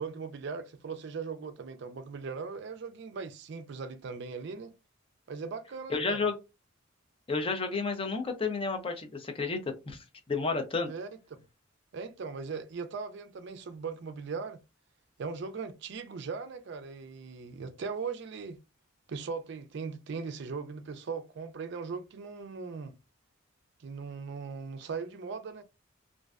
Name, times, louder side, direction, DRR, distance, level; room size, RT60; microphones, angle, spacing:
voice 1, 0.0-4.7 5.3-6.2 10.9-11.4 11.9-14.6 15.2-18.6 19.1-22.9 23.8-25.6, right 5 dB, 60° right, 0.4 m, -39 dB
voice 2, 5.9-6.3 7.3-9.6 9.9-10.0 10.3-10.9, left 4 dB, 25° left, 0.5 m, -31 dB
2.5 x 2.1 x 2.3 m
head